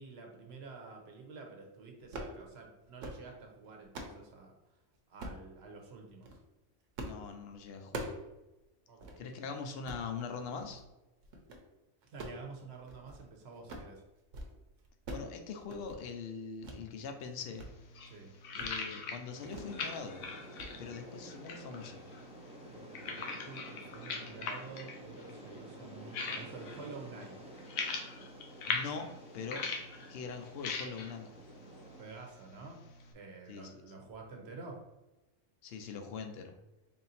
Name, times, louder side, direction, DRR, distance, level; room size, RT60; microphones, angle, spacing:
voice 1, 0.0-4.5 5.1-6.4 8.9-9.3 12.1-14.0 18.1-18.3 22.7-27.4 31.9-32.9 33.1-34.9, right 4 dB, 60° right, 1 dB, 1.0 m, -49 dB
sound 1, 2.0-2.4 2.8-3.2 3.6-4.2 5.2-5.5 6.1-6.4 7.0-7.2 7.5-8.3 8.6-8.7 9.0-9.2 9.7-10.1 10.6-10.9 11.2-11.6 12.0-13.3 13.5-13.9 14.2-14.5 14.8-15.3 15.6-16.0 16.6-16.8 17.2-17.7 18.0-18.2 18.6-18.8 19.5-19.8 20.1-20.3 20.6-20.7, right 1 dB, 85° right, 1.1 m, -44 dB
voice 2, 7.0-8.1 9.2-10.8 15.1-17.7 18.5-20.2 20.8-22.0 28.7-29.7 30.1-31.3 33.5-33.8 35.6-36.5, left 5 dB, 65° left, 5 dB, 0.7 m, -42 dB
sound 2, 17.4-33.1, left 4 dB, 85° left, 1.0 m, -42 dB
sound 3, 19.3-32.0, right 1 dB, 10° right, 0.3 m, -51 dB
3.7 x 2.6 x 4.1 m, 1.0 s
omnidirectional pair, 1.3 m